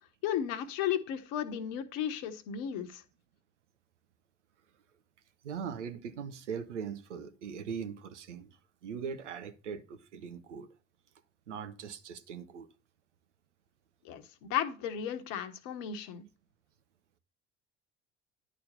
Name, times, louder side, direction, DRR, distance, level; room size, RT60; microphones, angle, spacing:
voice 1, 0.2-3.0 14.0-16.3, left 9 dB, 60° left, 1.2 m, -34 dB
voice 2, 5.4-10.7 11.5-12.7, right 6 dB, 80° right, 0.8 m, -40 dB
10.5 x 4.3 x 5.3 m
figure-of-eight pair, 55°, 35 cm